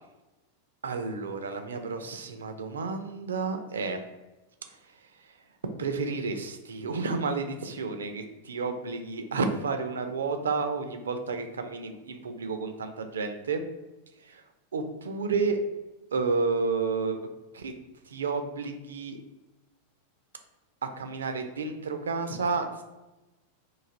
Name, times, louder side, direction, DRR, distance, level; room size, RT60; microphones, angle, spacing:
voice 1, 0.8-4.0 4.7-4.8 5.2-5.3 5.8-13.6 14.2-14.4 14.7-15.6 16.1-17.2 17.5-17.7 18.1-19.2 20.8-22.8, right 4 dB, 70° right, 7 dB, 0.4 m, -31 dB
3.1 x 2.4 x 3.7 m, 1.1 s
figure-of-eight pair, 90°, 0 cm